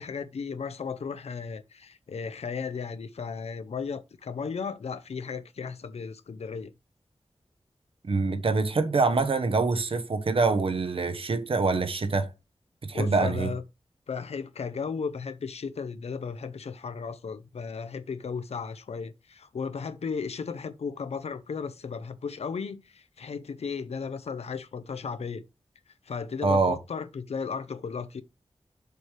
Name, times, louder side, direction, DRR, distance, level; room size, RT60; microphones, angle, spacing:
voice 1, 0.0-6.7 12.9-13.6 14.1-25.4 26.0-28.2, left 5 dB, 85° left, 0.6 m, -35 dB
voice 2, 8.1-12.3 12.8-13.5 26.4-26.8, right 3 dB, 60° right, 0.9 m, -25 dB
6.8 x 3.3 x 6.1 m
wide cardioid pair, 105°, 10 cm